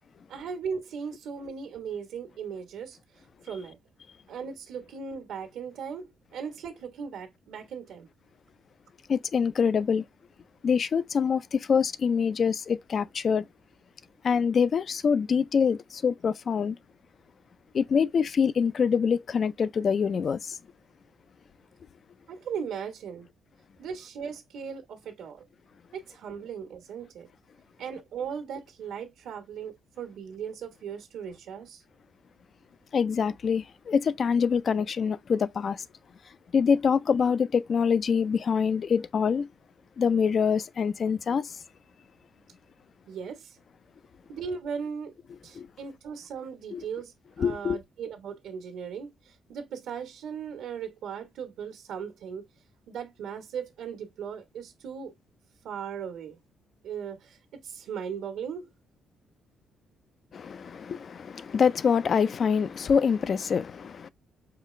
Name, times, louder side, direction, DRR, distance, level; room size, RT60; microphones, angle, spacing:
voice 1, 0.3-3.8 4.3-8.1 22.3-23.3 23.8-25.4 25.9-27.3 27.8-31.8 43.1-43.6 44.3-45.1 45.4-52.5 52.9-55.1 55.6-56.4 56.8-58.7, right 7 dB, 80° right, 1.2 m, -38 dB
voice 2, 9.1-10.0 10.6-13.5 14.2-16.8 17.7-20.6 32.9-35.9 36.5-39.5 40.0-41.6 45.5-45.7 46.7-46.8 47.4-47.8 60.3-64.1, left 6 dB, 50° left, 0.4 m, -25 dB
5.7 x 2.4 x 3.1 m
cardioid pair, 90°, 0 cm